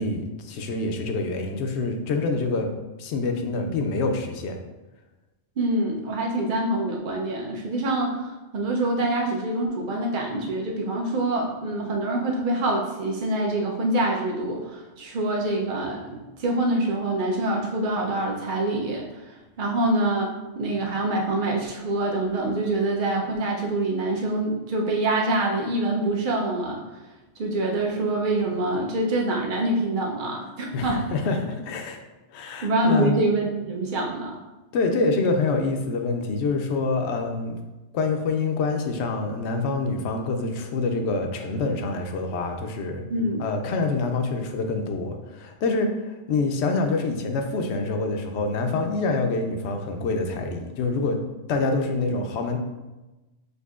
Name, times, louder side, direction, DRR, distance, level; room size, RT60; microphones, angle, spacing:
voice 1, 0.0-2.7 3.0-4.6 30.7-32.0 32.3-33.2 34.7-37.6 37.9-43.0 43.4-51.2 51.5-52.6, left 3 dB, 70° left, 4 dB, 0.8 m, -26 dB
voice 2, 5.6-19.0 19.6-26.8 27.4-31.0 32.6-34.3 43.1-43.4, right 2 dB, 50° right, -1 dB, 0.8 m, -25 dB
6.4 x 2.6 x 2.4 m, 1.1 s
omnidirectional pair, 1.2 m